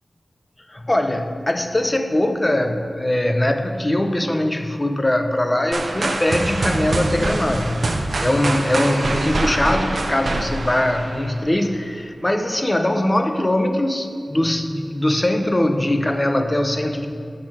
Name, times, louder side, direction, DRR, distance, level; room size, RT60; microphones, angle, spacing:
voice 1, 0.7-17.1, left 1 dB, 25° left, 7 dB, 0.7 m, -21 dB
sound 1, 5.7-11.6, right 2 dB, 75° right, 0.7 m, -25 dB
10.0 x 6.5 x 4.4 m, 2.3 s
cardioid pair, 50°, 0 cm